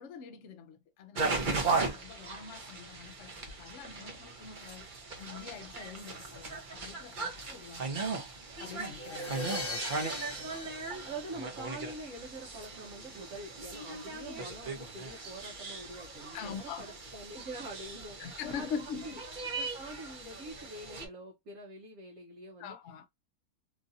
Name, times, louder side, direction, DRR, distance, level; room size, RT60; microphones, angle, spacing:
voice 1, 0.0-4.9 5.2-8.2 8.6-9.5 16.3-16.8 18.2-19.2 22.6-23.1, left 7 dB, 65° left, 0.8 m, -44 dB
sound 1, 1.1-21.1, right 3 dB, 40° right, 0.8 m, -38 dB
sound 2, 9.0-11.9, left 2 dB, 15° left, 0.7 m, -40 dB
voice 2, 9.9-10.7 11.0-18.2 18.6-18.7 19.0-19.2 19.5-22.8, right 2 dB, 65° right, 1.1 m, -45 dB
3.1 x 2.5 x 2.5 m
omnidirectional pair, 1.5 m